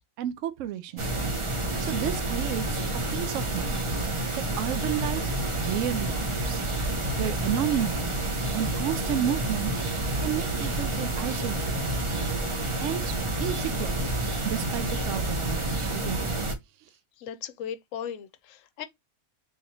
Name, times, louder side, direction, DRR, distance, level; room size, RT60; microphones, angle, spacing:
voice 1, 0.2-1.1 1.8-2.8 3.1-3.8 4.4-6.6 7.2-8.2 8.5-9.7 10.2-11.8 12.8-14.1 14.4-16.3, right 11 dB, 70° right, 0.8 m, -32 dB
sound 1, 1.0-16.5, right 2 dB, 40° right, 0.4 m, -29 dB
voice 2, 17.2-18.9, left 9 dB, 70° left, 0.9 m, -37 dB
3.9 x 2.9 x 2.7 m
omnidirectional pair, 1.5 m